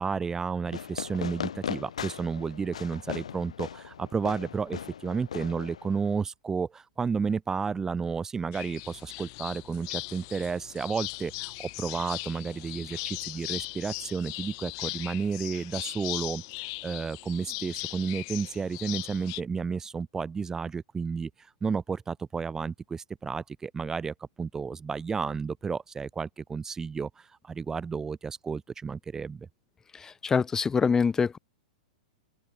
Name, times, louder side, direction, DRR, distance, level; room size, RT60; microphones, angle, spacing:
voice 1, 0.0-21.3 21.6-27.1 27.4-29.5, right 5 dB, 15° right, 1.9 m, -32 dB
Fireworks, 0.7-6.2, left 8 dB, 70° left, 3.3 m, -38 dB
sound 1, 8.5-19.4, left 28 dB, 45° left, 1.0 m, -38 dB
voice 2, 29.9-31.4, left 5 dB, 15° left, 1.1 m, -25 dB
open air
figure-of-eight pair, 105°, 4 cm